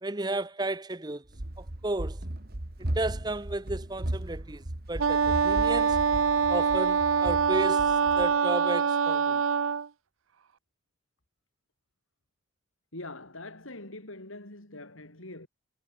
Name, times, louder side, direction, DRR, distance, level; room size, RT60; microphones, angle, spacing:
voice 1, 0.0-1.2 1.6-2.2 2.8-4.6 4.9-6.0 6.5-9.4, right 2 dB, 20° right, 0.8 m, -33 dB
Run, 1.3-8.3, right 1 dB, 50° right, 1.7 m, -36 dB
Wind instrument woodwind instrument, 5.0-9.9, right 6 dB, 85° right, 0.6 m, -24 dB
voice 2, 12.9-15.5, left 2 dB, 90° left, 6.1 m, -43 dB
head